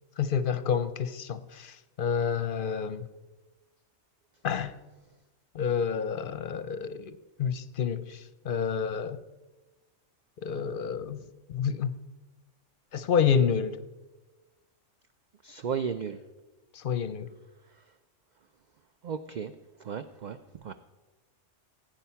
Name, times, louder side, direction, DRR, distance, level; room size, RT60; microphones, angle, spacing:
voice 1, 0.2-3.1 4.4-4.7 5.5-9.2 10.4-11.2 11.5-12.0 12.9-13.8 16.7-17.3, left 7 dB, 55° left, 0.7 m, -29 dB
voice 2, 15.4-16.2 17.8-17.9 19.0-19.5 19.8-20.7, right 7 dB, 55° right, 0.5 m, -35 dB
16.5 x 9.2 x 5.7 m
omnidirectional pair, 1.2 m